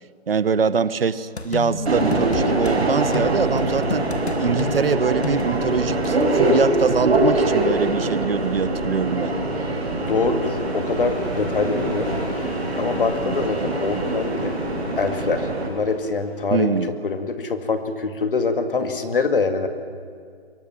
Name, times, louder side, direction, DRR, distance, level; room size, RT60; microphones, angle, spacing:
voice 1, 0.3-4.1 4.4-9.3 16.5-16.9, right 5 dB, 65° right, 15 dB, 1.1 m, -23 dB
sound 1, 1.4-2.8 3.1-6.3, left 3 dB, 85° left, 2.2 m, -31 dB
Subway metro underground, 1.9-15.7, right 2 dB, 85° right, 5.9 m, -23 dB
sound 2, 8.3-16.8, left 1 dB, 5° left, 3.6 m, -40 dB
voice 2, 10.1-12.1 12.8-14.5 15.0-16.8 17.0-19.7, left 4 dB, 55° left, 6 dB, 2.2 m, -24 dB
23.0 x 17.5 x 10.0 m, 2.1 s
hypercardioid pair, 165°, 32 cm